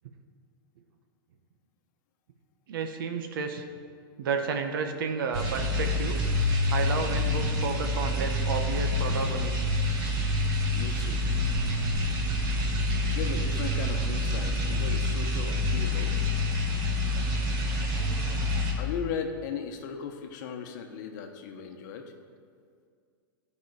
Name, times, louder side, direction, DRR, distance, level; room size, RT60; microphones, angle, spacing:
voice 1, 2.7-3.6 4.2-6.2 6.7-9.6, right 5 dB, 70° right, 6 dB, 1.0 m, -31 dB
sound 1, 5.3-18.7, left 1 dB, 35° right, 1.4 m, -27 dB
voice 2, 10.7-11.2 13.0-16.1 18.8-22.1, left 7 dB, 55° left, 5 dB, 1.0 m, -37 dB
12.0 x 5.4 x 4.7 m, 2.1 s
supercardioid pair, 140°, 12 cm